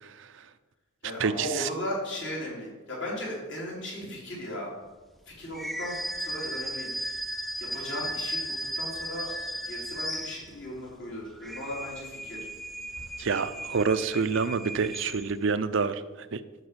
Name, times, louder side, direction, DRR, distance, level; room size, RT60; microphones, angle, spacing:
voice 1, 0.0-0.4 1.2-1.7 13.2-16.4, right 5 dB, 60° right, 12 dB, 0.5 m, -28 dB
voice 2, 1.0-4.7 5.3-7.2 7.6-9.3 9.7-12.4, equal, 55° left, -4 dB, 3.9 m, -37 dB
sound 1, 5.5-10.8 11.3-15.5, right 1 dB, ahead, 0.4 m, -36 dB
12.0 x 4.9 x 6.9 m, 1.2 s
head